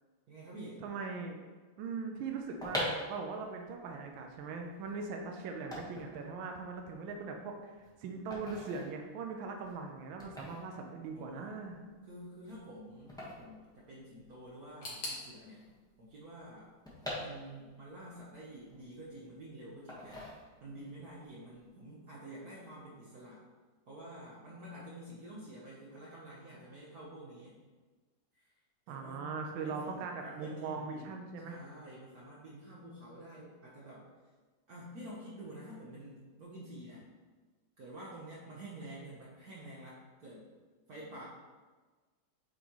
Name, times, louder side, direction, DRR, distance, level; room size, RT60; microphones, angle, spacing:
voice 1, 0.3-0.8 11.1-11.5 12.0-15.7 16.0-16.7 17.2-20.3 20.6-23.4 23.9-27.6 28.3-28.5 28.9-29.2 29.5-31.2 31.4-34.1 34.7-37.1 37.8-40.4 40.9-41.2, right 1 dB, 55° right, -6 dB, 1.3 m, -49 dB
voice 2, 0.8-1.4 1.8-11.8 28.9-31.6, right 4 dB, 80° right, 3 dB, 1.4 m, -40 dB
sound 1, 2.3-14.5 14.7-14.8 15.0-17.9 18.3-19.3 19.9-20.9 21.2-21.5, left 1 dB, 5° left, 0.8 m, -44 dB
sound 2, 14.8-17.7 17.9-18.8 19.0-19.1 20.0-20.1, left 1 dB, 70° left, 2.1 m, -47 dB
8.1 x 4.0 x 3.0 m, 1.4 s
omnidirectional pair, 2.2 m